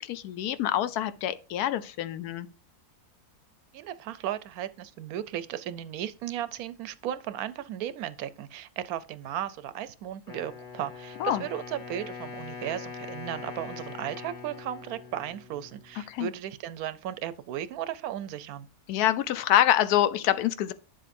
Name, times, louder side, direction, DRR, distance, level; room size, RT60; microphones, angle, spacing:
voice 1, 0.0-2.5 11.2-11.4 16.1-16.3 18.9-20.7, left 12 dB, 80° left, 1.1 m, -26 dB
voice 2, 3.7-18.7, right 11 dB, 75° right, 1.0 m, -35 dB
Wind instrument woodwind instrument, 10.3-16.2, left 5 dB, 25° left, 2.0 m, -42 dB
9.1 x 7.6 x 2.6 m
omnidirectional pair, 1.7 m